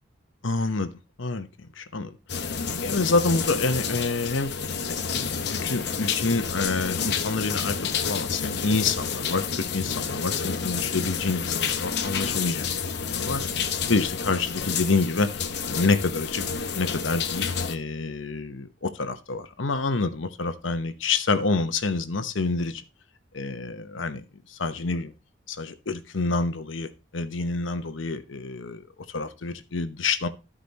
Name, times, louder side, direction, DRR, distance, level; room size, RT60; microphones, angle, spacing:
voice 1, 0.4-4.5 4.9-13.4 13.9-15.3 15.7-16.4 16.7-22.8 23.3-24.2 24.5-25.1 25.5-30.3, left 3 dB, 85° left, 1.0 m, -28 dB
sound 1, 2.3-17.8, left 6 dB, 60° left, 0.9 m, -29 dB
13.5 x 5.1 x 4.1 m
head